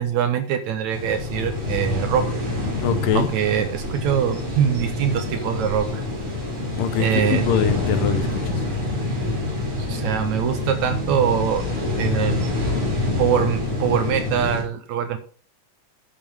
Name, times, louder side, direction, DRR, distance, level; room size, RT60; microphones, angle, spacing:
voice 1, 0.0-2.3 3.1-5.9 7.0-7.5 9.9-11.6 12.0-12.4 13.2-15.2, right 9 dB, 75° right, 8 dB, 1.8 m, -23 dB
sound 1, 0.9-14.6, left 2 dB, 40° right, 5.0 m, -26 dB
voice 2, 2.8-3.3 6.8-8.6, left 8 dB, 80° left, 9 dB, 2.7 m, -23 dB
10.0 x 7.5 x 3.5 m, 0.40 s
omnidirectional pair, 3.8 m